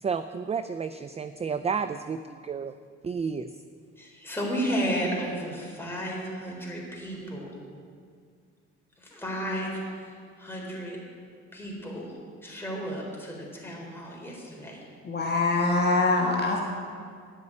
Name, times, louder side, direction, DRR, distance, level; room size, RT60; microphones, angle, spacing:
voice 1, 0.0-2.7 3.0-3.5, right 6 dB, 20° right, 11 dB, 0.4 m, -31 dB
voice 2, 4.0-7.5 9.0-9.7 10.0-11.0 11.5-12.1 12.4-14.8, equal, 5° left, -3 dB, 4.1 m, -33 dB
voice 3, 15.0-16.6, left 2 dB, 35° left, -1 dB, 1.5 m, -24 dB
9.8 x 8.1 x 8.6 m, 2.1 s
cardioid pair, 90°, 30 cm